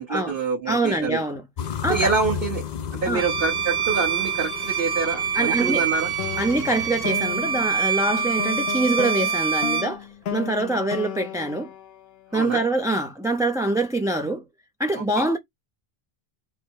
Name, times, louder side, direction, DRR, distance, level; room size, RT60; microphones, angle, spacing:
voice 1, 0.0-1.2 1.9-2.6 2.9-6.1 12.3-12.6, right 4 dB, 60° right, 1.4 m, -26 dB
voice 2, 0.7-1.4 1.8-2.1 3.1-3.2 5.0-5.9 6.4-11.7 12.3-14.4 14.8-15.4, right 2 dB, 5° right, 0.4 m, -25 dB
sound 1, 1.6-8.7, left 8 dB, 55° left, 0.5 m, -35 dB
Bowed string instrument, 3.2-10.0, right 7 dB, 45° right, 1.0 m, -25 dB
sound 2, 6.2-12.6, left 9 dB, 80° left, 0.9 m, -34 dB
4.8 x 2.1 x 4.5 m
omnidirectional pair, 1.0 m